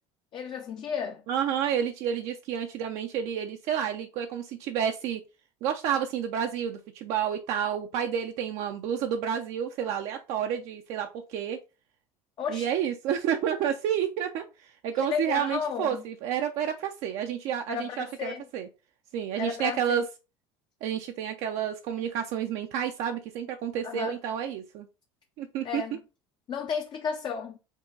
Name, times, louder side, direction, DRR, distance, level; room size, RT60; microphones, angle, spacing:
voice 1, 0.3-1.2 12.4-12.7 15.0-16.0 17.7-18.5 19.4-20.1 23.8-24.2 25.6-26.0 26.5-27.6, left 7 dB, 40° left, 0.5 m, -33 dB
voice 2, 1.3-5.2 5.6-11.6 12.5-18.7 19.1-20.0 20.8-24.9 25.4-25.8, right 9 dB, 65° right, 0.5 m, -30 dB
5.3 x 2.3 x 3.8 m
supercardioid pair, 110°, 12 cm